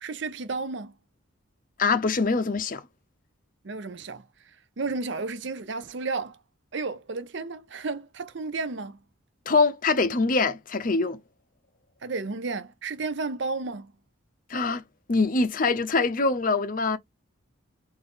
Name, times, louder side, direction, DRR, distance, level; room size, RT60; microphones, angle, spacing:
voice 1, 0.0-0.9 3.6-4.2 4.8-6.4 6.7-9.0 12.0-13.9, right 3 dB, 60° right, 0.6 m, -32 dB
voice 2, 1.8-2.8 9.5-11.2 14.5-14.8 15.1-17.0, left 3 dB, 40° left, 0.7 m, -24 dB
4.0 x 3.4 x 3.5 m
head